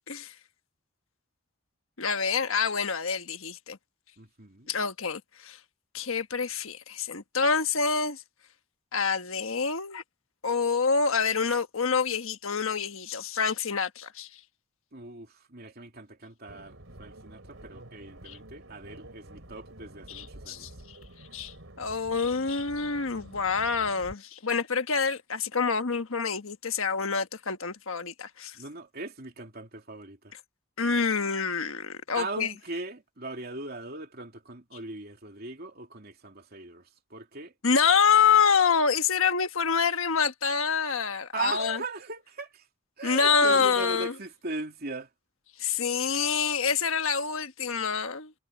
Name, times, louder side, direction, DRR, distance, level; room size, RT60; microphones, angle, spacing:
voice 1, 2.0-3.8 4.7-5.6 5.9-8.2 8.9-10.0 10.4-14.4 18.2-18.4 20.1-21.0 21.3-28.6 30.8-32.5 37.6-41.8 43.0-44.1 45.6-48.3, left 5 dB, 70° left, 1.4 m, -27 dB
voice 2, 4.2-4.7 14.9-20.7 28.5-30.3 32.1-37.5 41.3-42.7 43.0-45.1, right 3 dB, 45° right, 3.0 m, -39 dB
sound 1, 16.5-24.1, right 1 dB, 65° right, 4.4 m, -49 dB
head